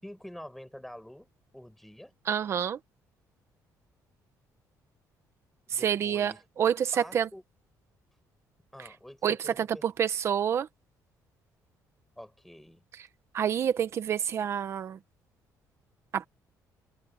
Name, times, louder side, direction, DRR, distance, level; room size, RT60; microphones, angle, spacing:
voice 1, 0.0-1.3 1.5-2.1 5.7-7.4 8.7-9.9 12.2-12.8, equal, 5° left, 6.9 m, -47 dB
voice 2, 2.3-2.8 5.7-6.9 7.1-7.3 9.2-10.7 13.3-15.0 16.1-16.3, right 8 dB, 40° right, 1.1 m, -28 dB
cardioid pair, 160°, 7 cm